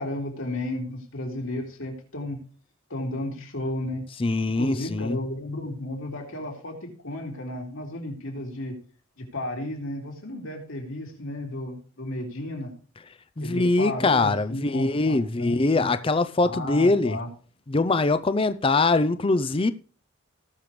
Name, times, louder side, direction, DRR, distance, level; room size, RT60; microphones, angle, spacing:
voice 1, 0.0-2.4 2.9-4.0 4.6-8.8 9.2-12.7 13.4-15.9 16.4-17.3, left 1 dB, 75° left, 3.7 m, -33 dB
voice 2, 4.2-5.2 13.4-17.2 17.7-19.7, left 3 dB, 25° left, 0.5 m, -22 dB
18.5 x 6.8 x 3.2 m
head